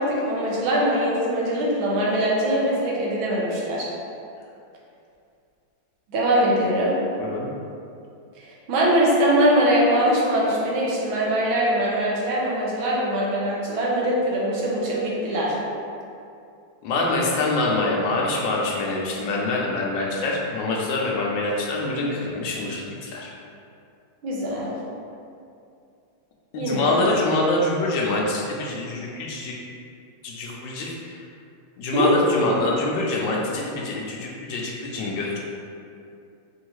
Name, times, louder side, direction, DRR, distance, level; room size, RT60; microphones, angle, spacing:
voice 1, 0.0-3.9 6.1-7.0 8.4-15.6 24.2-24.7 26.6-27.1 31.9-32.1, right 1 dB, 75° right, -5 dB, 1.6 m, -22 dB
voice 2, 7.2-7.5 16.8-23.3 26.5-29.6 30.2-31.2 31.8-35.4, left 2 dB, 70° left, -2 dB, 1.2 m, -25 dB
5.4 x 2.7 x 3.0 m, 2.5 s
omnidirectional pair, 2.2 m